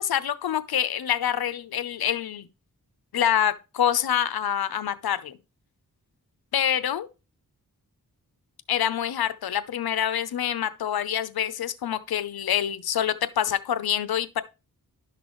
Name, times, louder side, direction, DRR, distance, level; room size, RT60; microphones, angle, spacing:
voice 1, 0.0-2.5 3.1-5.4 6.5-7.1 8.7-14.4, left 10 dB, 90° left, 0.8 m, -26 dB
11.0 x 6.0 x 3.1 m
cardioid pair, 45°, 36 cm